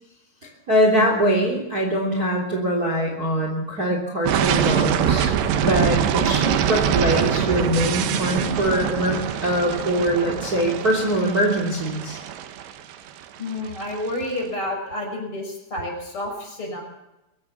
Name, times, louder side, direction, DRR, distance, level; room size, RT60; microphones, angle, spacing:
voice 1, 0.7-9.2 9.4-12.2, equal, 25° right, 1 dB, 3.3 m, -22 dB
sound 1, 4.3-14.1, right 9 dB, 90° right, 3.5 m, -24 dB
voice 2, 13.4-16.8, left 1 dB, 30° left, 1 dB, 6.6 m, -30 dB
22.5 x 16.5 x 7.2 m, 0.95 s
omnidirectional pair, 4.9 m